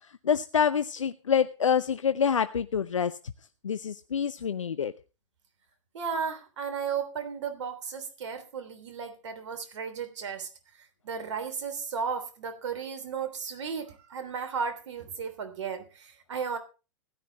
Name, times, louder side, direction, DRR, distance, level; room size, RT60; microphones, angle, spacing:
voice 1, 0.2-3.2 3.6-4.9, left 7 dB, 90° left, 13 dB, 0.7 m, -26 dB
voice 2, 5.9-10.5 11.0-16.6, right 6 dB, 70° right, 9 dB, 3.2 m, -34 dB
16.0 x 11.5 x 4.0 m, 0.33 s
hypercardioid pair, 115°, 16 cm